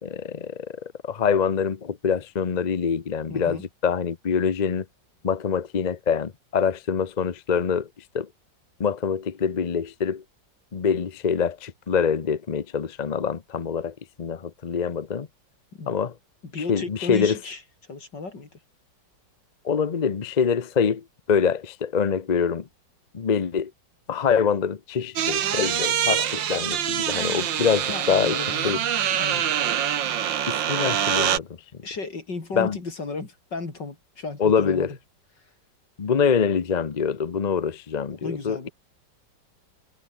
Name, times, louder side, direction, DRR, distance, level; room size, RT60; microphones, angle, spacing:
voice 1, 0.0-4.9 5.2-7.9 8.1-8.3 8.8-10.2 10.7-15.3 15.9-16.1 16.7-17.4 19.6-22.7 23.1-23.7 24.1-28.8 30.5-31.8 32.5-32.8 34.4-34.9 36.0-38.7, left 6 dB, 35° left, 0.7 m, -25 dB
voice 2, 3.3-3.6 15.7-15.9 16.5-17.6 17.9-18.6 27.9-28.9 29.2-29.5 31.8-35.0 38.2-38.7, left 3 dB, 70° left, 4.8 m, -34 dB
sound 1, 25.2-31.4, right 9 dB, 85° right, 2.0 m, -25 dB
omnidirectional pair, 2.0 m